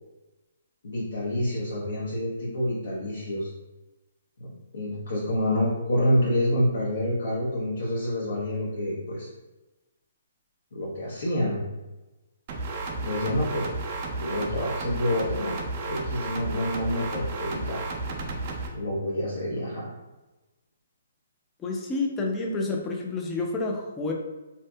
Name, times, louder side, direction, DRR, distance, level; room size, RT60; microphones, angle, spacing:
voice 1, 0.8-3.5 4.4-9.3 10.7-11.6 13.0-13.7 14.2-17.8 18.7-19.9, left 1 dB, 75° left, -7 dB, 0.6 m, -28 dB
sound 1, 12.5-18.7, right 2 dB, 40° right, 0.4 m, -33 dB
voice 2, 21.6-24.1, left 3 dB, 15° left, 0 dB, 0.4 m, -29 dB
2.7 x 2.5 x 2.2 m, 1.1 s
hypercardioid pair, 140°, 0 cm